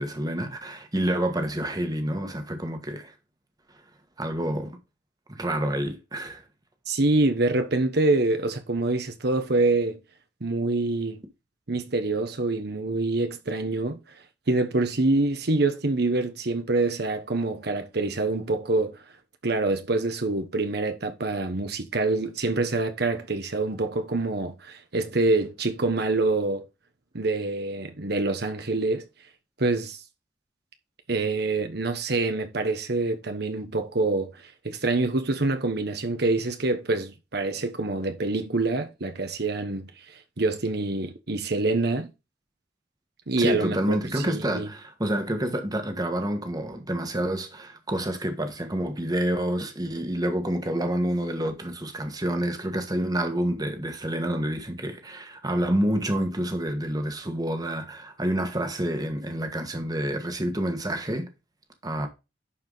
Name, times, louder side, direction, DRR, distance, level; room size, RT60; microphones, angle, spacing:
voice 1, 0.0-3.1 4.2-4.8 5.3-6.4 43.4-61.3 61.8-62.1, right 1 dB, 20° right, 1.5 m, -28 dB
voice 2, 6.9-10.0 10.4-11.2 11.7-14.0 14.5-19.0 19.4-26.6 27.1-29.0 29.6-30.0 31.1-42.1 43.3-44.7, right 2 dB, 60° right, 1.2 m, -26 dB
11.0 x 4.8 x 4.0 m
head